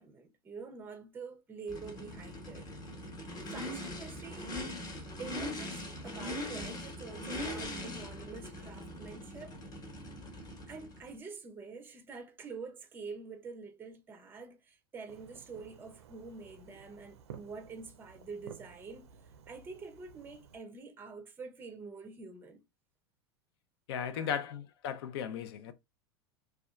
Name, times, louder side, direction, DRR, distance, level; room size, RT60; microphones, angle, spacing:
voice 1, 0.0-2.7 3.5-4.6 5.2-9.6 10.7-19.1 19.5-22.6 24.1-24.3, right 4 dB, 15° right, 0.5 m, -46 dB
Race car auto racing / Idling / Accelerating revving vroom, 1.7-11.1, left 1 dB, 25° left, 1.0 m, -41 dB
Fireworks, 15.1-20.6, right 8 dB, 85° right, 0.5 m, -54 dB
voice 2, 23.9-25.7, left 8 dB, 65° left, 0.5 m, -36 dB
2.7 x 2.2 x 2.2 m
hypercardioid pair, 105°, 14 cm